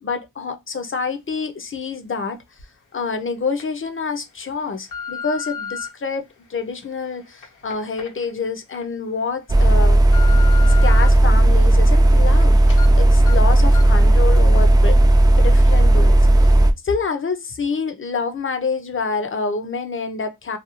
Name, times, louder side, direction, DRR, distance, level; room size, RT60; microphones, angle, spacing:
voice 1, 0.0-2.4 2.9-10.0 10.6-12.6 13.0-15.0 15.4-16.5 16.8-20.6, left 4 dB, 40° left, 0.5 m, -27 dB
sound 1, 2.6-2.7 3.3-3.6 4.3-5.9 6.5-8.8 9.3-9.4 9.8-11.1 11.5-12.4 12.7-12.9 13.3-13.4 13.7-14.0 14.4-14.5, left 6 dB, 85° left, 0.9 m, -35 dB
sound 2, 9.5-16.7, right 1 dB, 15° right, 0.3 m, -13 dB
2.4 x 2.3 x 2.8 m
cardioid pair, 50°, 31 cm